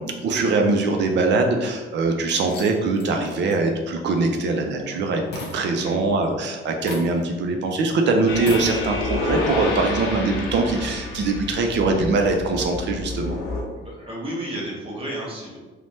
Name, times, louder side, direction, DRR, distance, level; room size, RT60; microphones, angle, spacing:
voice 1, 0.0-13.4, right 3 dB, 60° right, 3 dB, 0.4 m, -22 dB
sound 1, 1.0-1.7 2.2-5.0 5.3-6.4 6.8-7.4 7.7-7.8 8.4-8.8, left 1 dB, 55° left, 0.7 m, -38 dB
voice 2, 5.6-6.0 13.7-15.6, right 1 dB, 25° right, -4 dB, 0.9 m, -33 dB
sound 2, 8.3-13.6, left 2 dB, 90° left, 0.6 m, -29 dB
3.1 x 2.1 x 2.7 m, 1.3 s
cardioid pair, 110°, 21 cm